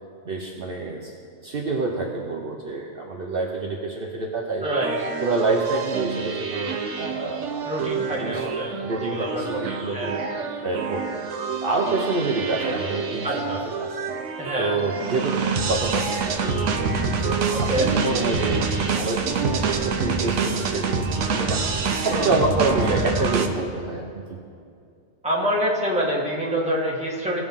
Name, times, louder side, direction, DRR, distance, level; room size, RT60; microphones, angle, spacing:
voice 1, 0.3-1.1 1.4-4.7 5.2-7.6 8.2-8.5 8.8-10.2 10.6-11.1 11.6-13.4 13.8-14.1 14.6-15.4 15.7-18.7 19.0-21.6 21.9-24.4, right 3 dB, 55° right, 0 dB, 1.0 m, -27 dB
voice 2, 4.6-5.1 7.6-8.7 9.0-10.2 13.2-13.6 14.4-14.7 17.5-17.9 22.1-22.5 25.2-27.4, equal, 5° right, -5 dB, 1.7 m, -26 dB
sound 1, 4.6-23.5, right 5 dB, 85° right, 1.1 m, -27 dB
17.5 x 6.0 x 3.7 m, 2.4 s
omnidirectional pair, 1.2 m